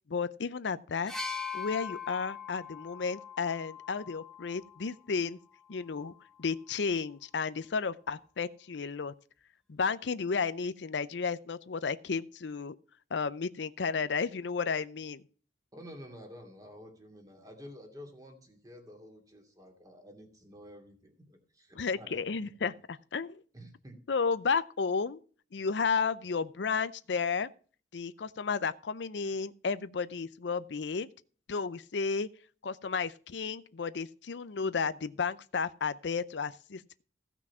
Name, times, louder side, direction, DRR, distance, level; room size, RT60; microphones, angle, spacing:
voice 1, 0.1-1.1 1.5-5.4 5.7-6.1 6.4-9.1 9.7-12.7 13.1-15.2 21.8-23.4 24.1-25.2 25.5-27.5 27.9-31.1 31.5-32.3 32.6-37.0, left 5 dB, 70° left, 15 dB, 0.5 m, -33 dB
sound 1, 1.1-4.9 5.9-6.1, left 6 dB, 5° left, 1.3 m, -41 dB
voice 2, 15.7-22.7 23.5-24.0, equal, 20° right, 4 dB, 2.6 m, -50 dB
16.0 x 6.1 x 5.6 m, 0.41 s
head